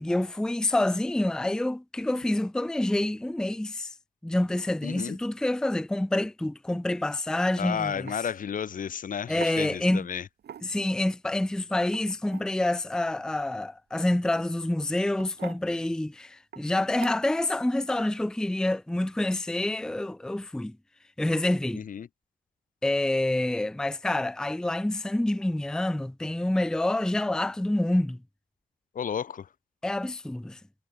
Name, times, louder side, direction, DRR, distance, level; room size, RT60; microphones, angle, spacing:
voice 1, 0.0-3.9 4.2-8.1 9.3-10.1 10.6-20.8 21.2-21.8 22.8-28.2 29.8-30.6, left 1 dB, 5° left, 0.6 m, -27 dB
voice 2, 4.8-5.2 7.6-10.3 21.7-22.1 28.9-29.5, left 8 dB, 45° left, 0.8 m, -32 dB
sound 1, 7.5-7.6 8.1-8.2 9.4-9.6 10.4-10.9 11.8-12.5 14.1-14.4 15.1-15.6 16.5-16.7 17.0-17.4, right 9 dB, 55° right, 1.9 m, -43 dB
cardioid pair, 90°, 20 cm